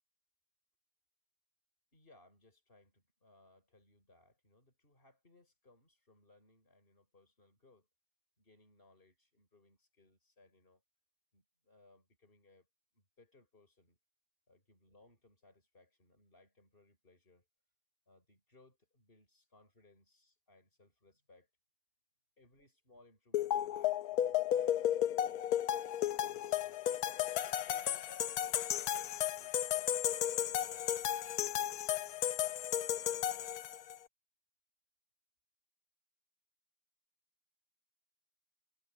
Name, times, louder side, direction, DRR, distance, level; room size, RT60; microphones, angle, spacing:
voice 1, 1.9-7.9 8.4-10.8 11.3-12.7 12.9-14.0 14.5-17.5 18.1-21.5 22.4-25.6 26.0-30.0 30.4-31.7, left 2 dB, 35° left, 6.7 m, -66 dB
sound 1, 23.3-34.0, left 11 dB, 90° left, 1.3 m, -34 dB
omnidirectional pair, 1.6 m